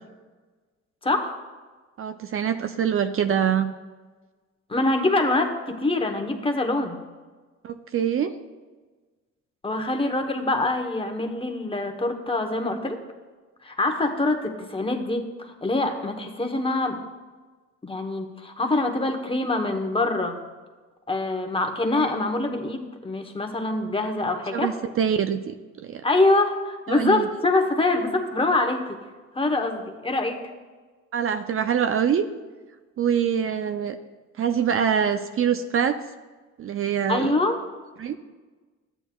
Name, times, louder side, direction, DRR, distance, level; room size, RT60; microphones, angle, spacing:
voice 1, 1.0-1.4 4.7-7.0 9.6-13.0 13.6-17.0 17.8-20.4 21.1-24.7 26.0-29.0 29.3-30.5 37.1-37.6, left 2 dB, 20° left, 5 dB, 1.0 m, -24 dB
voice 2, 2.0-3.7 7.6-8.3 24.3-25.6 25.8-26.0 26.9-27.3 31.1-32.3 33.0-34.0 34.4-36.0 36.6-37.3 38.0-38.2, right 8 dB, 45° right, 9 dB, 0.5 m, -24 dB
12.5 x 9.0 x 2.3 m, 1.3 s
cardioid pair, 90°, 30 cm